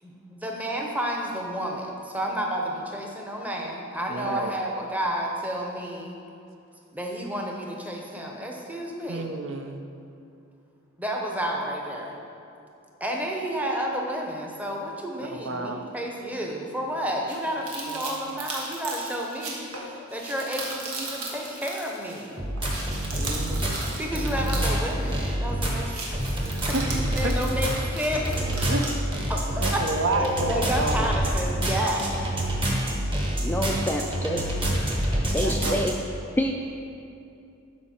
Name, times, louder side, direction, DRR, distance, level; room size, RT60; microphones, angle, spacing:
voice 1, 0.0-6.2 6.9-9.3 11.0-12.2 13.0-22.4 24.0-26.4 26.8-28.3 28.6-28.7 29.3-29.8 30.2-32.2, equal, 5° right, 0 dB, 0.8 m, -31 dB
voice 2, 4.1-4.5 9.1-9.8 15.2-15.8 17.9-18.0 23.1-23.8 26.7-26.9 27.2-27.4 28.7-28.9 29.6-31.2 35.4-35.9, right 2 dB, 60° right, 5 dB, 0.6 m, -30 dB
sound 1, 17.3-22.3 22.6-25.4 25.7-29.0, right 3 dB, 85° right, 1.5 m, -37 dB
sound 2, 22.4-35.9, right 1 dB, 25° right, 1.2 m, -27 dB
voice 3, 33.4-34.5 35.3-35.9 36.4-36.6, equal, 10° left, 1 dB, 0.3 m, -27 dB
12.0 x 5.2 x 4.3 m, 2.7 s
head